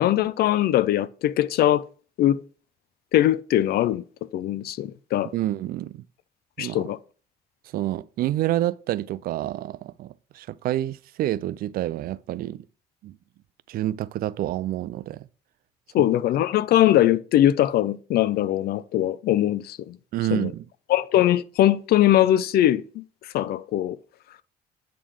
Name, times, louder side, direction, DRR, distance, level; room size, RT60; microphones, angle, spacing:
voice 1, 0.0-1.8 2.2-2.4 3.1-4.0 4.3-5.3 6.6-7.0 15.9-20.0 20.3-20.5 20.9-23.0 23.3-24.0, left 12 dB, 65° left, 0.6 m, -21 dB
voice 2, 5.3-6.0 6.6-6.8 7.7-12.6 13.0-13.2 13.7-15.3 20.1-20.7, right 13 dB, 60° right, 0.4 m, -28 dB
8.5 x 3.8 x 6.3 m
cardioid pair, 110°, 17 cm